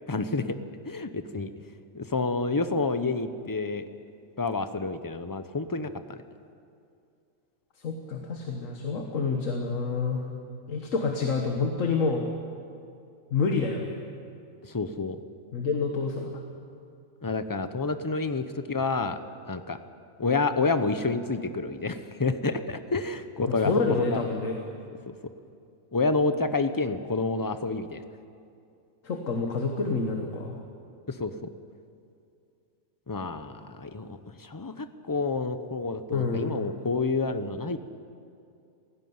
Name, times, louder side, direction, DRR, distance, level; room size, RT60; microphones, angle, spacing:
voice 1, 0.1-0.6 0.8-1.5 1.9-3.8 4.4-6.2 14.7-15.2 17.2-19.2 19.5-19.8 20.2-23.7 24.0-24.2 25.1-25.2 25.9-28.0 31.2-31.5 33.1-37.8, left 3 dB, 20° left, 10 dB, 0.6 m, -29 dB
voice 2, 7.8-10.3 10.7-12.3 13.3-14.0 15.5-16.4 23.5-24.6 29.0-30.6 36.1-36.6, left 4 dB, 70° left, 3 dB, 1.8 m, -28 dB
17.5 x 16.0 x 9.5 m, 2.5 s
omnidirectional pair, 1.4 m